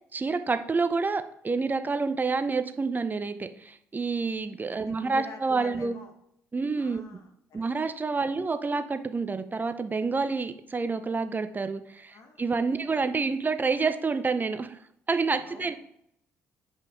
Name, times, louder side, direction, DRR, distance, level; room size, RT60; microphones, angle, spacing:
voice 1, 0.1-5.9 6.5-7.0 7.5-14.8 15.1-15.7, right 4 dB, 30° right, 9 dB, 0.7 m, -28 dB
voice 2, 4.7-6.1 6.8-7.7 8.1-8.3 12.1-12.5 12.8-12.9 15.5-15.7, left 4 dB, 60° left, 5 dB, 1.3 m, -49 dB
8.3 x 5.3 x 3.6 m, 0.73 s
hypercardioid pair, 50°, 6 cm